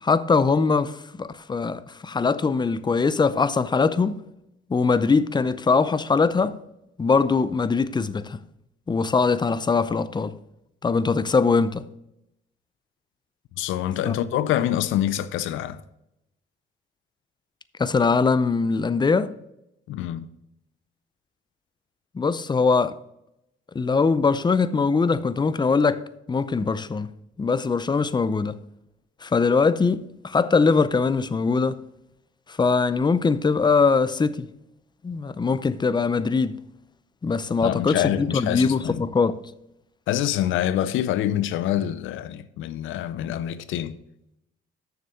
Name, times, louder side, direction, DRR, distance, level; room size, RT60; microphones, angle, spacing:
voice 1, 0.0-4.2 4.7-6.6 7.0-8.4 8.9-10.4 10.8-11.9 14.0-14.2 17.8-19.3 22.1-23.0 23.7-26.0 26.3-27.1 27.4-28.6 29.2-31.8 32.5-34.5 35.0-36.6 37.2-39.4, left 4 dB, 20° left, 0.5 m, -22 dB
voice 2, 13.6-15.8 19.9-20.3 37.6-39.0 40.1-44.0, left 11 dB, 85° left, 0.6 m, -26 dB
6.8 x 6.7 x 6.3 m
cardioid pair, 90°, 20 cm